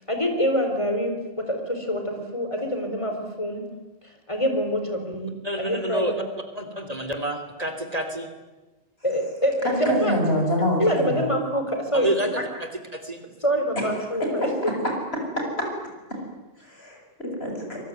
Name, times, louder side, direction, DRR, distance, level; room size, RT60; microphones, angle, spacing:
voice 1, 0.1-1.1 1.5-3.6 4.3-5.3 5.6-6.3 9.0-10.2 10.8-12.4 13.4-14.5, equal, 30° left, 5 dB, 4.7 m, -25 dB
voice 2, 5.4-6.1 6.5-8.3 11.9-12.3 12.6-13.2, right 1 dB, 40° right, 7 dB, 3.3 m, -29 dB
voice 3, 9.9-11.3 14.4-14.5 15.4-15.5 16.6-17.8, left 1 dB, 85° left, 1 dB, 7.9 m, -26 dB
25.0 x 23.5 x 9.5 m, 1.1 s
omnidirectional pair, 1.0 m